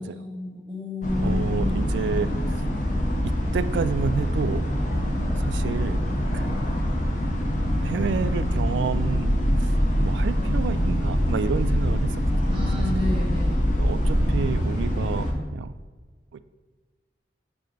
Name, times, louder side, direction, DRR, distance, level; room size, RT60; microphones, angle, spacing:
voice 1, 0.0-1.9 12.5-13.8, left 2 dB, 25° right, -3 dB, 1.1 m, -31 dB
sound 1, 1.0-15.3, equal, 45° left, 0.9 m, -24 dB
voice 2, 1.2-2.3 3.2-5.0 5.4-6.0 6.3-6.6 7.8-9.3 9.6-9.7 10.0-12.2 13.8-15.7 16.3-16.4, right 6 dB, 85° right, 14 dB, 0.3 m, -30 dB
7.6 x 3.3 x 5.1 m, 1.4 s
head